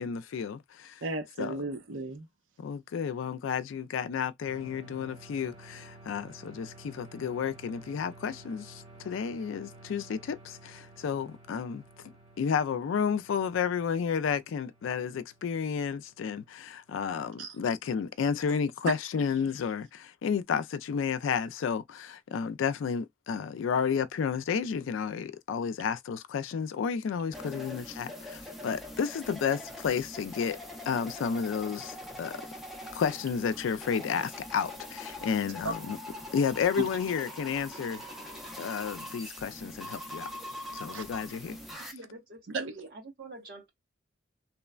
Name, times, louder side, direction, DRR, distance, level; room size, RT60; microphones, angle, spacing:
voice 1, 0.0-1.0 1.4-1.6 2.6-11.8 12.4-30.6 30.9-32.4 32.9-36.0 36.3-38.1 38.6-40.3 40.7-41.6, left 6 dB, 80° left, 0.3 m, -31 dB
voice 2, 1.0-2.3 17.4-17.5 18.9-19.0 35.6-35.7 36.8-36.9 38.6-38.7 40.9-41.0 42.5-42.7, right 3 dB, 80° right, 0.6 m, -34 dB
sound 1, 4.4-16.9, right 2 dB, 35° right, 1.2 m, -53 dB
sound 2, 27.3-41.9, left 1 dB, ahead, 0.5 m, -43 dB
voice 3, 41.9-43.7, right 3 dB, 50° right, 1.0 m, -46 dB
3.0 x 2.1 x 2.3 m
head